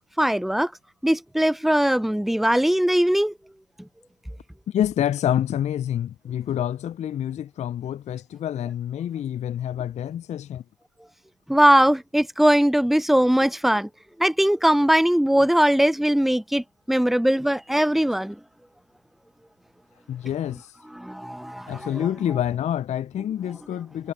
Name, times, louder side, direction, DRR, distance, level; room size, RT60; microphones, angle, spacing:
voice 1, 0.2-0.7 1.0-3.3 11.5-13.9 14.2-18.4 20.9-22.1, equal, ahead, 0.6 m, -20 dB
voice 2, 4.7-10.6 20.1-20.7 21.7-24.1, left 10 dB, 40° left, 0.5 m, -27 dB
hypercardioid pair, 55°, 17 cm